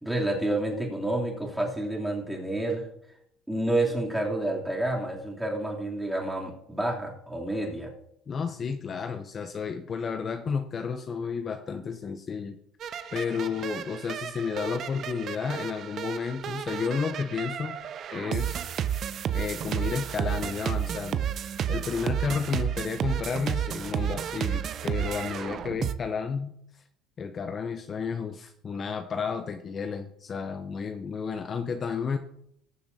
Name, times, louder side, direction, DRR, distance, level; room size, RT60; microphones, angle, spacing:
voice 1, 0.0-2.9 3.5-7.9, right 1 dB, 5° right, -3 dB, 2.9 m, -29 dB
voice 2, 8.3-12.6 13.1-17.8 18.1-18.6 19.3-21.2 21.7-26.8 27.2-32.2, left 6 dB, 40° left, 7 dB, 0.6 m, -32 dB
sound 1, 12.8-25.9, right 9 dB, 50° right, 0.6 m, -32 dB
19.0 x 6.9 x 2.7 m, 0.75 s
supercardioid pair, 95°, 0 cm